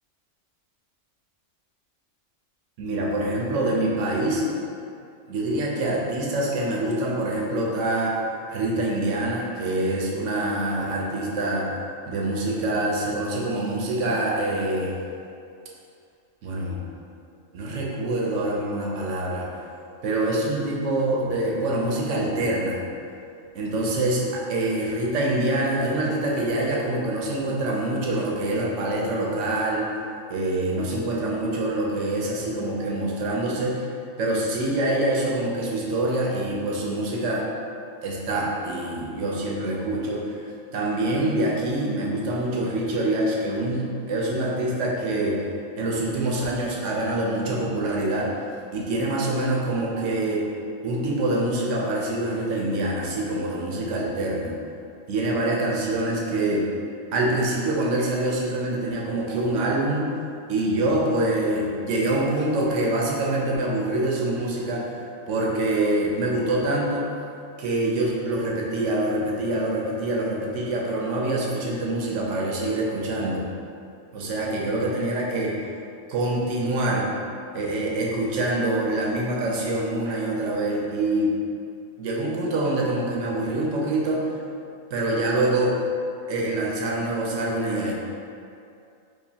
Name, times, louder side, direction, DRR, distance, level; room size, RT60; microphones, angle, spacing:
voice 1, 2.8-4.4 5.3-8.2 8.5-11.7 12.1-15.0 16.4-16.8 17.5-19.5 20.0-22.8 23.5-29.9 30.3-33.9 34.2-37.5 38.0-40.5 40.7-45.4 45.8-48.3 48.7-50.4 50.8-54.5 55.1-56.7 57.1-60.1 60.5-67.1 67.6-73.4 74.1-75.5 76.1-77.1 77.5-81.3 82.0-84.3 84.9-85.8 86.3-87.9, right 1 dB, 70° right, -3 dB, 0.9 m, -25 dB
4.7 x 2.5 x 2.7 m, 2.5 s
omnidirectional pair, 1.4 m